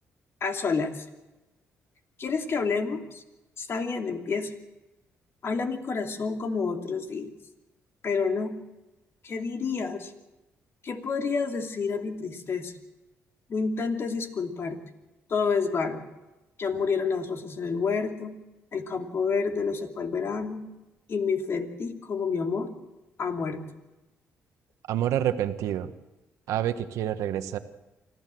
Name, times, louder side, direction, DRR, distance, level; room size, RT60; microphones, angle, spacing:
voice 1, 0.4-1.0 2.2-3.2 3.6-4.5 5.4-7.3 8.0-8.6 9.2-10.1 10.8-12.7 13.5-14.8 15.3-16.0 16.6-18.4 18.7-20.7 21.1-22.7 23.2-23.7, left 5 dB, 50° left, 4 dB, 2.8 m, -29 dB
voice 2, 24.9-25.9 26.5-27.6, right 11 dB, 85° right, 9 dB, 1.3 m, -27 dB
25.5 x 15.5 x 7.7 m, 1.1 s
cardioid pair, 80°, 5 cm